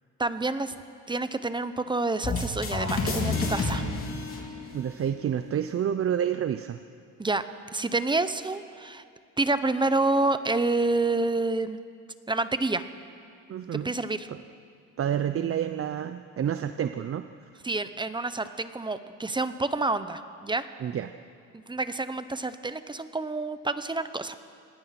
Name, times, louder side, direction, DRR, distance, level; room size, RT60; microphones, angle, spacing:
voice 1, 0.2-0.7 1.1-3.8 7.2-7.4 7.7-9.0 9.4-11.8 12.3-12.8 13.7-14.3 17.6-20.7 21.5-24.3, right 2 dB, 15° right, 11 dB, 1.0 m, -28 dB
sound 1, 2.2-5.1, left 3 dB, 45° left, 3.5 m, -29 dB
voice 2, 4.7-6.8 13.5-13.9 14.3-14.4 15.0-17.2 20.8-21.1, right 9 dB, 50° right, 10 dB, 0.7 m, -29 dB
26.5 x 19.5 x 6.0 m, 2.4 s
cardioid pair, 105°, 30 cm